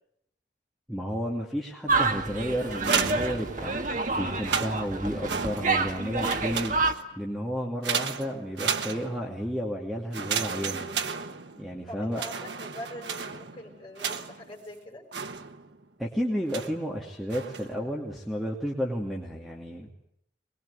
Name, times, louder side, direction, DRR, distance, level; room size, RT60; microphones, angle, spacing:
voice 1, 0.9-6.7 7.2-10.9 11.5-12.2 16.0-19.9, equal, ahead, -4 dB, 2.6 m, -32 dB
sound 1, 1.9-6.9, right 3 dB, 45° right, 1.8 m, -28 dB
sound 2, 2.7-3.9 4.3-5.9 6.2-7.2 7.8-9.4 10.1-11.8 12.1-14.5 15.1-15.8 16.5-16.9 17.3-17.8, right 6 dB, 75° right, 1.3 m, -33 dB
voice 2, 11.9-15.1, left 1 dB, 30° left, 0 dB, 6.4 m, -43 dB
22.5 x 21.5 x 9.8 m, 0.75 s
head